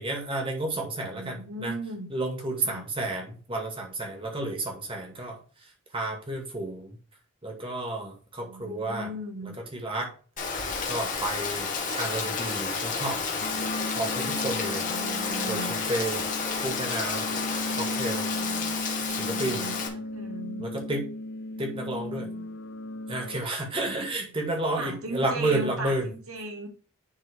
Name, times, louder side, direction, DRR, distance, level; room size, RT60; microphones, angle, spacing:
voice 1, 0.0-1.7 2.1-5.4 5.9-6.9 7.4-9.1 9.7-10.1 10.9-13.2 13.9-14.8 15.5-16.3 16.6-17.3 17.8-18.3 19.2-19.6 20.6-21.0 21.6-22.3 23.1-26.1, right 2 dB, 25° right, 2 dB, 2.2 m, -31 dB
voice 2, 1.1-2.1 2.6-2.9 8.4-9.6 14.5-15.8 19.1-20.6 21.5-21.7 22.0-22.6 24.8-26.7, right 1 dB, 75° right, 2 dB, 2.3 m, -38 dB
Rain, 10.4-19.9, left 5 dB, 35° left, 1.8 m, -31 dB
sound 1, 13.4-23.4, left 1 dB, 55° left, 0.7 m, -36 dB
10.0 x 4.4 x 3.7 m, 0.40 s
head